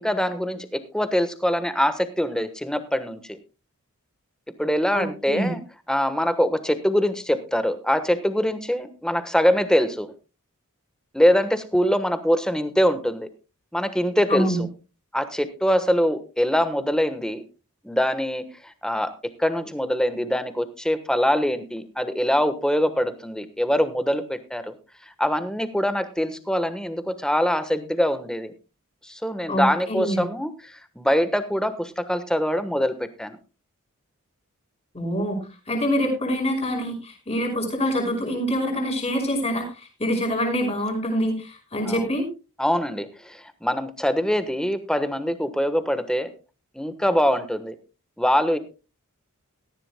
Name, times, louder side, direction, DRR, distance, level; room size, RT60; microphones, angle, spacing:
voice 1, 0.0-3.4 4.6-5.6 5.9-10.1 11.1-13.3 13.7-14.6 15.1-17.4 17.8-19.1 19.4-24.7 25.2-28.5 29.0-33.4 41.8-42.1 42.6-46.3 46.7-47.7 48.2-48.6, equal, 5° left, 10 dB, 1.2 m, -23 dB
voice 2, 4.9-5.5 14.3-14.6 29.5-30.2 34.9-35.4 35.7-42.3, equal, 30° left, 2 dB, 5.5 m, -25 dB
18.0 x 14.0 x 2.2 m, 0.30 s
head